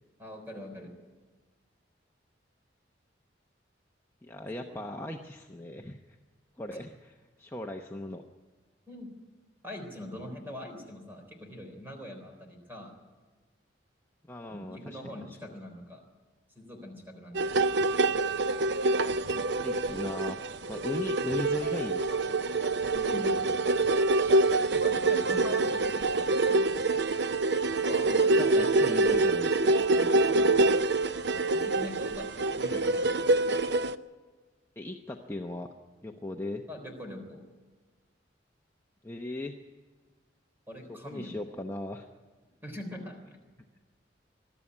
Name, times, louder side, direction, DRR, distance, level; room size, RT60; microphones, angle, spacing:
voice 1, 0.2-0.9 4.6-4.8 8.9-9.1 9.6-12.9 14.5-16.0 16.6-17.7 22.9-23.4 24.7-26.7 27.8-29.2 30.0-30.8 31.5-33.4 36.7-37.4 40.7-41.3 42.6-43.4, left 1 dB, 10° right, 3 dB, 3.8 m, -43 dB
voice 2, 4.2-6.0 6.6-8.2 14.3-15.5 19.6-20.4 20.7-22.1 27.9-29.7 32.7-32.8 34.8-35.7 36.0-36.6 39.0-39.5 40.9-42.1, left 1 dB, 15° left, 1 dB, 0.8 m, -38 dB
sound 1, 17.3-33.9, right 2 dB, 65° right, 0.6 m, -26 dB
21.5 x 12.5 x 9.8 m, 1.4 s
head